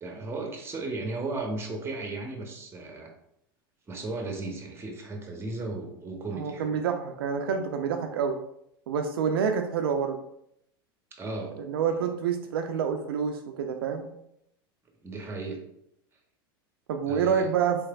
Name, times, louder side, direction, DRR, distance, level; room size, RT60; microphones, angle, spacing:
voice 1, 0.0-3.1 3.9-6.8 11.2-11.6 11.9-12.1 15.0-15.6 17.1-17.5, right 2 dB, 20° right, 2 dB, 0.7 m, -35 dB
voice 2, 6.3-8.4 8.9-10.2 11.6-14.1 16.9-17.8, right 7 dB, 75° right, 5 dB, 0.4 m, -27 dB
3.3 x 3.2 x 2.2 m, 0.76 s
hypercardioid pair, 95°, 13 cm